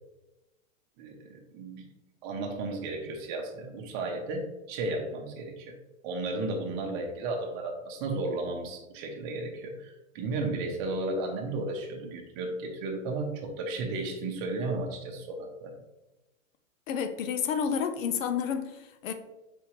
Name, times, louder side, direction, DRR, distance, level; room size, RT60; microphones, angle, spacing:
voice 1, 1.0-1.9 2.2-5.8 6.0-15.7, right 2 dB, 35° right, 0.9 m, -34 dB
voice 2, 16.9-19.1, left 7 dB, 75° left, 0.6 m, -30 dB
4.3 x 3.5 x 3.0 m
hypercardioid pair, 150°, 40 cm